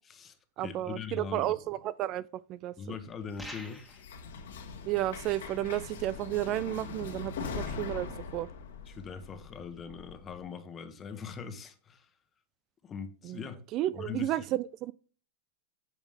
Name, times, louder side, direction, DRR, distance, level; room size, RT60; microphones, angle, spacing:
voice 1, 0.0-1.5 2.8-3.8 8.9-12.1 12.8-13.6 14.0-14.4, left 6 dB, 25° left, 1.1 m, -41 dB
voice 2, 0.6-2.8 4.8-8.5 13.2-13.4 13.7-14.9, right 14 dB, 45° right, 0.3 m, -32 dB
sound 1, 3.1-10.4, left 5 dB, 85° left, 1.6 m, -42 dB
sound 2, 3.4-4.1, left 1 dB, ahead, 1.7 m, -45 dB
8.8 x 6.2 x 3.6 m
hypercardioid pair, 120°, 0 cm